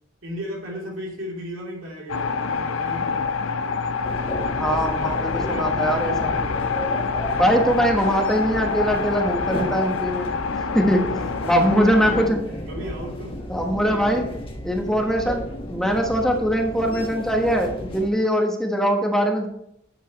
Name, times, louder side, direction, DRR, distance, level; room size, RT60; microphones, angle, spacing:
voice 1, 0.2-3.3 5.3-6.7 11.1-13.5 13.7-14.3, equal, 85° right, -2 dB, 3.2 m, -36 dB
sound 1, 2.1-12.3, left 5 dB, 85° left, 0.6 m, -26 dB
sound 2, 4.0-18.1, left 1 dB, 30° left, 1.4 m, -33 dB
voice 2, 4.6-6.3 7.3-10.3 10.7-11.0 11.5-12.4 13.5-14.2 14.6-19.5, equal, 5° left, 1 dB, 1.3 m, -22 dB
10.5 x 7.4 x 3.1 m, 0.75 s
head